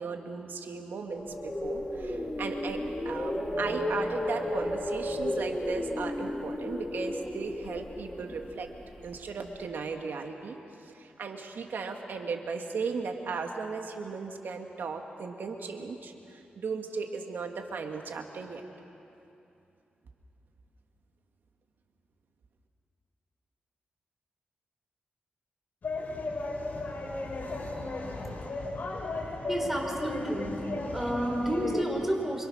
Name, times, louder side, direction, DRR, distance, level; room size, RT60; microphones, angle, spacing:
voice 1, 0.0-8.7 9.0-18.6, right 4 dB, 80° right, 4 dB, 2.2 m, -36 dB
sound 1, 1.1-9.2, left 1 dB, 25° left, 3.4 m, -33 dB
sound 2, 25.8-31.8, left 2 dB, 60° left, 5.2 m, -35 dB
voice 2, 29.5-30.6 30.9-32.4, right 1 dB, 10° right, 1 dB, 5.4 m, -30 dB
28.0 x 26.0 x 6.5 m, 2.8 s
cardioid pair, 70°, 3 cm